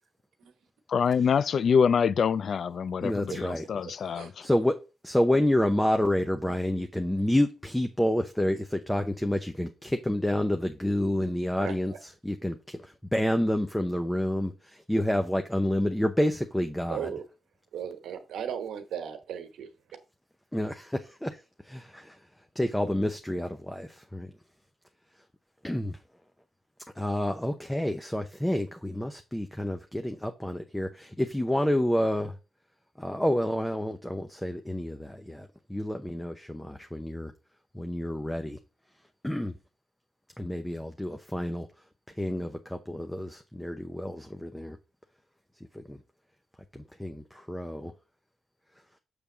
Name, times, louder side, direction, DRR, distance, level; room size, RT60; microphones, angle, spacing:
voice 1, 0.9-4.5, left 6 dB, 65° left, 0.3 m, -25 dB
voice 2, 3.0-3.6 4.4-4.8 5.0-17.1 20.5-21.4 21.6-22.2 22.5-24.3 25.6-26.0 27.0-32.3 33.0-37.3 37.7-38.6 39.2-39.5 40.4-41.7 42.2-44.8 45.7-46.0 46.7-47.9, left 1 dB, 5° left, 0.7 m, -29 dB
voice 3, 16.9-17.2 17.7-19.7, right 8 dB, 85° right, 1.1 m, -36 dB
6.9 x 3.4 x 6.1 m
cardioid pair, 80°, 0 cm